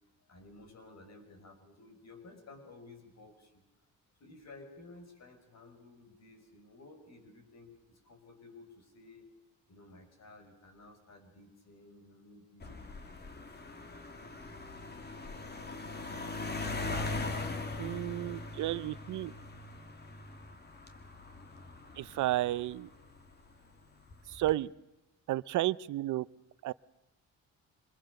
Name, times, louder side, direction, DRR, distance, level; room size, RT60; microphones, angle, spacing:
voice 1, 0.2-3.6 4.2-9.3 9.7-13.5 23.5-24.0, left 2 dB, 60° left, 6 dB, 5.7 m, -55 dB
sound 1, 12.6-23.3 24.1-24.5, left 3 dB, 35° left, 2.4 m, -41 dB
voice 2, 17.8-19.3 22.0-22.9 24.3-24.7 25.3-26.2 26.6-26.7, right 15 dB, 75° right, 19 dB, 0.7 m, -32 dB
25.0 x 21.0 x 6.5 m, 1.0 s
cardioid pair, 90°, 30 cm